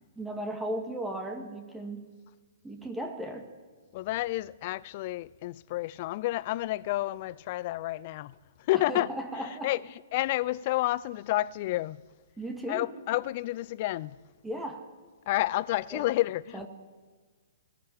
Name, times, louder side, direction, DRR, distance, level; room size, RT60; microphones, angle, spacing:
voice 1, 0.2-2.1 2.6-3.5 8.7-9.7 12.4-12.9 14.4-14.9 15.9-16.0 16.5-16.7, right 1 dB, 5° right, 2.1 m, -36 dB
voice 2, 3.9-8.3 8.7-9.1 9.6-9.8 10.1-12.0 12.7-14.2 15.3-16.7, left 17 dB, 40° left, 0.6 m, -30 dB
20.0 x 14.5 x 10.0 m
figure-of-eight pair, 115°, 0 cm